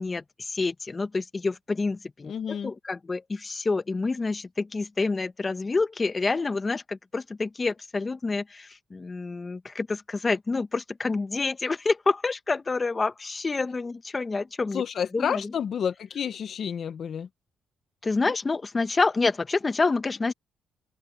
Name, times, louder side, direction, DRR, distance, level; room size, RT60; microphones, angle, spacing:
voice 1, 0.0-14.8 15.1-15.4 18.0-20.3, left 3 dB, 25° left, 1.2 m, -28 dB
voice 2, 2.3-2.7 14.7-17.3, left 7 dB, 55° left, 0.9 m, -30 dB
open air
cardioid pair, 90°, 0 cm